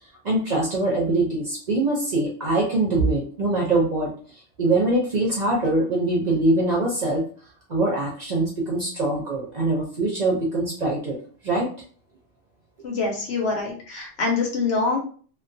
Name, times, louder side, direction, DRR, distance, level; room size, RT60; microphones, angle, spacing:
voice 1, 0.2-4.1 4.6-7.2 7.7-11.2 11.4-11.7, right 2 dB, 50° right, -3 dB, 0.6 m, -23 dB
voice 2, 12.8-15.0, left 4 dB, 85° left, -1 dB, 1.0 m, -25 dB
2.4 x 2.2 x 2.5 m, 0.43 s
omnidirectional pair, 1.2 m